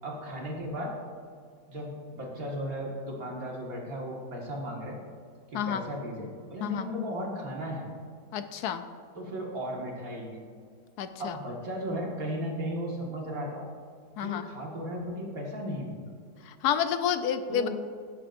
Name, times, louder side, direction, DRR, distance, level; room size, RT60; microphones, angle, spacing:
voice 1, 0.0-0.9 1.7-5.0 5.5-7.8 9.1-10.4 11.2-13.7 14.2-16.0 17.5-17.7, equal, 60° right, -2 dB, 2.2 m, -35 dB
voice 2, 8.3-8.8 11.0-11.4 14.2-14.4 16.5-17.7, left 9 dB, 75° left, 9 dB, 1.1 m, -29 dB
16.5 x 8.0 x 2.6 m, 2.1 s
omnidirectional pair, 1.7 m